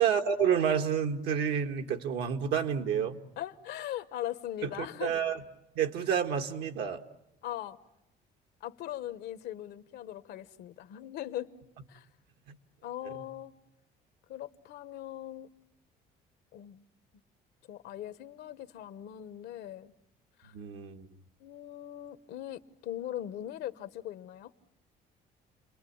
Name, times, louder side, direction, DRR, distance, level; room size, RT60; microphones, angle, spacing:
voice 1, 0.0-3.2 4.6-5.4 5.7-7.0 12.5-12.6 20.5-21.1, right 8 dB, 80° right, 1.6 m, -29 dB
voice 2, 3.4-5.2 7.4-7.8 8.6-11.5 11.9-12.1 12.8-13.5 14.3-15.5 16.5-16.8 17.7-19.9 20.4-20.5 21.4-24.5, left 12 dB, 80° left, 1.1 m, -40 dB
30.0 x 21.5 x 8.5 m
cardioid pair, 110°, 17 cm